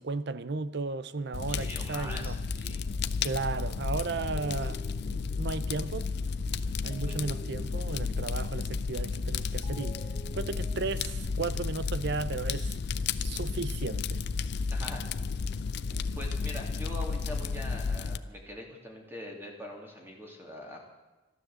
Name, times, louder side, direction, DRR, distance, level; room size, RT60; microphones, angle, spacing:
voice 1, 0.0-2.4 3.2-4.8 5.4-6.1 6.8-10.0 10.3-12.8 13.2-14.2, right 3 dB, 60° right, 0.7 m, -34 dB
Fire, 1.3-18.2, left 4 dB, 55° left, 0.5 m, -33 dB
voice 2, 1.5-2.8 7.0-7.2 14.7-15.0 15.9-20.8, left 1 dB, 10° right, 2.6 m, -43 dB
sound 1, 2.8-3.1 4.2-5.9 6.9-8.6 9.6-11.3, left 2 dB, 20° left, 1.8 m, -50 dB
13.0 x 12.5 x 7.6 m
head